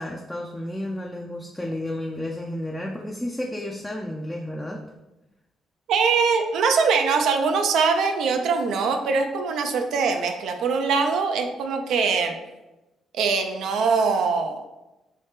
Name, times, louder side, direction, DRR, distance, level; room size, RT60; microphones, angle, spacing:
voice 1, 0.0-4.8, left 1 dB, 5° left, -1 dB, 0.3 m, -32 dB
voice 2, 5.9-12.4 13.1-14.7, right 5 dB, 80° right, 5 dB, 0.4 m, -22 dB
2.8 x 2.7 x 3.5 m, 1.0 s
cardioid pair, 90°, 0 cm